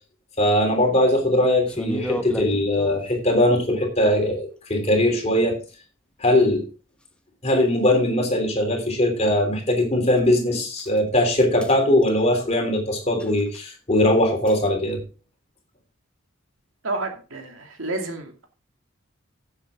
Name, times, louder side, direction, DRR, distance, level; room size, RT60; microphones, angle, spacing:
voice 1, 0.4-5.6 6.2-6.6 7.4-15.0, left 1 dB, 30° left, 3 dB, 3.3 m, -20 dB
sound 1, 1.7-3.1 7.0-7.1 7.9-8.0 10.1-10.3 10.8-11.0 11.3-11.7 12.0-12.2 13.2-13.6 14.5-14.7, equal, 5° left, 0.9 m, -33 dB
voice 2, 16.8-18.5, right 2 dB, 90° right, 3 dB, 2.6 m, -30 dB
15.5 x 7.6 x 3.7 m, 0.35 s
head